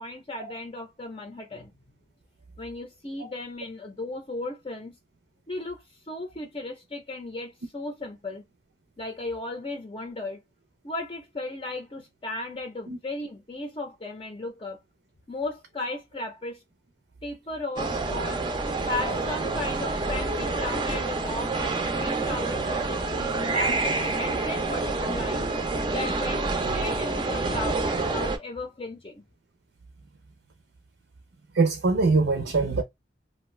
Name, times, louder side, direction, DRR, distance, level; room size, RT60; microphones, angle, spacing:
voice 1, 0.0-1.7 2.6-4.9 5.5-8.4 9.0-10.4 10.8-14.8 15.3-16.6 17.2-25.5 25.9-29.2, left 2 dB, 30° left, 0.6 m, -36 dB
sound 1, 17.8-28.4, right 3 dB, 25° right, 0.5 m, -28 dB
voice 2, 31.6-32.8, right 3 dB, 80° right, 0.5 m, -23 dB
2.6 x 2.3 x 3.1 m
head